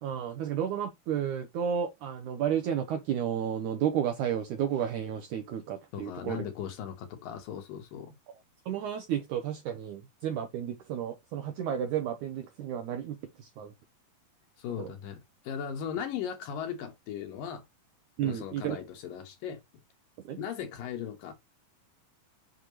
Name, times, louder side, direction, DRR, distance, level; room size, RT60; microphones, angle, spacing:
voice 1, 0.0-6.4 8.7-13.7 14.8-14.9 18.2-18.8 20.3-20.4, right 9 dB, 75° right, 1.9 m, -32 dB
voice 2, 5.9-8.2 14.6-17.7 18.2-19.6 20.4-21.3, left 8 dB, 70° left, 2.6 m, -38 dB
6.7 x 5.7 x 3.0 m
omnidirectional pair, 4.2 m